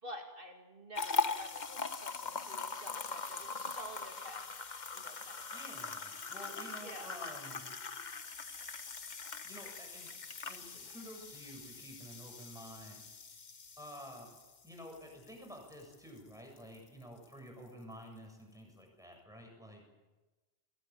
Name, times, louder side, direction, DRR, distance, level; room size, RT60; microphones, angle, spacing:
voice 1, 0.0-4.4 4.9-5.6 6.8-7.2, equal, 55° right, 2 dB, 2.6 m, -50 dB
sound 1, 1.0-16.2 16.6-16.8 17.2-17.3, left 4 dB, 45° left, 1.2 m, -41 dB
voice 2, 5.5-7.6 9.4-10.1 10.4-13.0 13.8-14.3 14.6-19.8, equal, 5° right, 1 dB, 7.6 m, -50 dB
22.0 x 19.5 x 9.0 m, 1.2 s
omnidirectional pair, 1.1 m